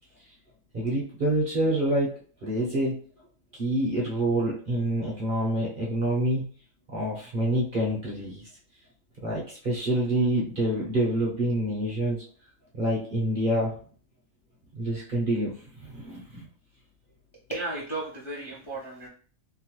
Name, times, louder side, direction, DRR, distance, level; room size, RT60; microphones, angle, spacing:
voice 1, 0.7-2.1 2.4-3.0 3.5-6.4 6.9-8.5 9.2-12.2 12.7-13.7 14.7-16.4, right 1 dB, 50° right, -3 dB, 0.7 m, -27 dB
voice 2, 17.5-19.1, right 2 dB, 30° left, -5 dB, 0.5 m, -34 dB
2.9 x 2.2 x 2.9 m, 0.44 s
omnidirectional pair, 1.5 m